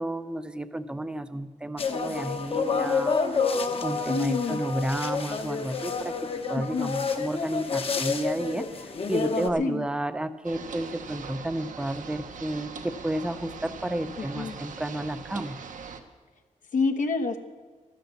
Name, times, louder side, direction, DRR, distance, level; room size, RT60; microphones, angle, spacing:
voice 1, 0.0-3.4 3.8-15.6, right 1 dB, 5° right, 12 dB, 0.5 m, -31 dB
sound 1, 1.8-9.5, left 4 dB, 45° left, 1.0 m, -29 dB
voice 2, 4.1-4.6 6.7-6.9 9.6-9.8 14.4-14.5 16.7-17.4, left 4 dB, 75° left, 4 dB, 1.1 m, -27 dB
sound 2, 10.4-16.0, right 5 dB, 75° right, 1.1 m, -41 dB
13.5 x 11.5 x 7.0 m, 1.4 s
wide cardioid pair, 170°, 13 cm